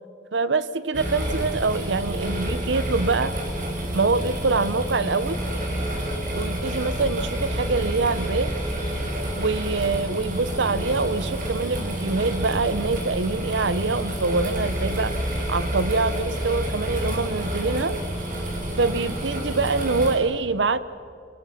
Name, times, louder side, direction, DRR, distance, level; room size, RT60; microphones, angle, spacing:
voice 1, 0.3-3.4 3.9-5.4 6.3-8.5 9.3-15.1 15.5-18.0 18.8-20.8, right 3 dB, 90° right, 15 dB, 0.8 m, -25 dB
sound 1, 0.9-20.2, equal, 50° right, 5.1 m, -29 dB
28.0 x 21.5 x 5.8 m, 2.3 s
head